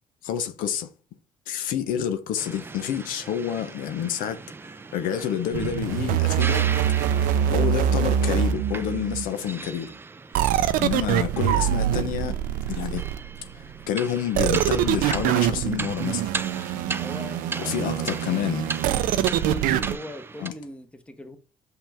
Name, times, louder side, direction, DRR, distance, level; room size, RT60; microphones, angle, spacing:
voice 1, 0.2-0.9 1.5-6.7 7.5-9.9 10.8-12.3 12.7-13.0 13.5-16.3 17.6-18.7 20.4-20.5, left 9 dB, 80° left, 0.8 m, -28 dB
sound 1, 2.4-20.5, right 4 dB, 15° right, 0.4 m, -38 dB
sound 2, 5.5-9.2 10.3-13.4 14.3-20.0, right 10 dB, 85° right, 0.5 m, -24 dB
voice 2, 17.0-21.4, left 1 dB, 10° left, 0.9 m, -40 dB
5.8 x 5.6 x 3.4 m
cardioid pair, 110°, 14 cm